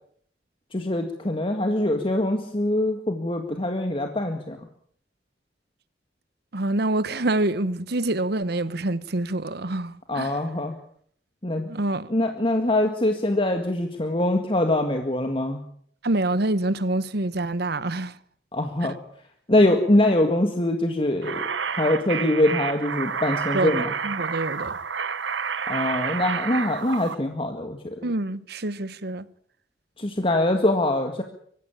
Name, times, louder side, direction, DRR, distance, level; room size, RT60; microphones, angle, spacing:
voice 1, 0.7-4.6 10.1-10.8 11.4-11.7 12.1-15.6 18.5-19.0 19.5-23.9 25.7-28.0 30.0-31.2, left 1 dB, 30° left, 1.9 m, -23 dB
voice 2, 6.5-10.4 11.7-12.1 16.0-18.2 18.8-18.9 23.5-24.8 28.0-29.3, right 2 dB, 60° right, 1.1 m, -26 dB
sound 1, 21.2-27.1, right 6 dB, 85° right, 1.2 m, -29 dB
24.5 x 15.0 x 8.7 m
head